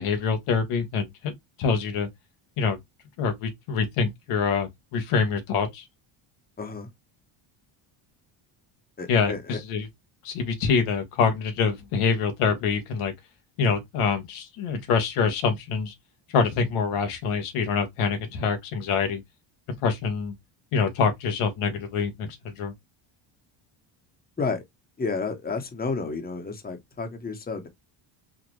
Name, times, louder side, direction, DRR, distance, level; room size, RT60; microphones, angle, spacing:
voice 1, 0.0-1.3 1.6-2.1 2.6-2.8 3.2-5.8 9.1-9.9 10.2-13.1 13.6-15.9 16.3-19.2 19.8-20.3 20.7-22.7, left 5 dB, 80° left, 1.4 m, -25 dB
voice 2, 6.6-6.9 9.0-9.6 24.4-24.6 25.0-27.7, left 4 dB, 20° left, 1.1 m, -31 dB
4.3 x 2.5 x 3.0 m
cardioid pair, 105°, 50 cm